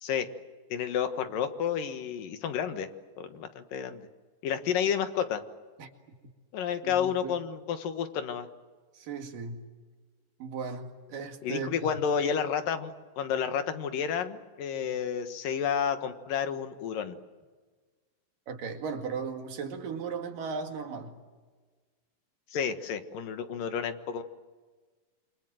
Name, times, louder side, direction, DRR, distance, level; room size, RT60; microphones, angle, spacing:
voice 1, 0.7-2.9 3.2-4.0 4.4-5.4 6.5-8.5 11.4-17.2 22.5-24.2, left 8 dB, 80° left, 3.2 m, -31 dB
voice 2, 6.8-7.4 8.9-9.7 10.4-11.9 18.5-21.2, right 5 dB, 80° right, 3.8 m, -37 dB
27.5 x 25.5 x 7.8 m
omnidirectional pair, 3.9 m